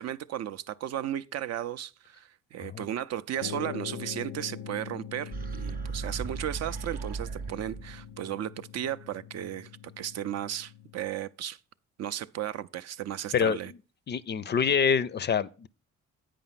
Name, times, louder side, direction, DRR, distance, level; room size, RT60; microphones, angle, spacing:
voice 1, 0.0-9.7 10.0-11.6 12.0-13.7, right 11 dB, 60° right, 0.5 m, -35 dB
sound 1, 3.4-11.1, left 9 dB, 85° left, 0.5 m, -43 dB
sound 2, 5.3-8.1, right 5 dB, 30° right, 0.8 m, -36 dB
voice 2, 14.1-15.7, left 6 dB, 35° left, 0.4 m, -26 dB
8.6 x 5.1 x 5.7 m
cardioid pair, 90°, 30 cm